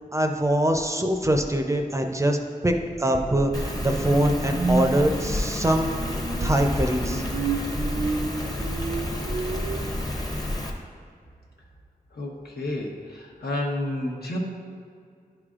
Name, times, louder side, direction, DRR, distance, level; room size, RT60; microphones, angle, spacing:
voice 1, 0.1-2.4 2.6-7.2, right 1 dB, 20° right, 4 dB, 0.5 m, -23 dB
Rain, 3.5-10.7, left 1 dB, 25° left, 0.7 m, -30 dB
sound 1, 3.8-9.8, right 4 dB, 90° right, 0.5 m, -31 dB
voice 2, 12.2-14.4, left 1 dB, 85° left, -1 dB, 1.0 m, -30 dB
10.5 x 4.9 x 2.4 m, 2.3 s
wide cardioid pair, 90°, 16 cm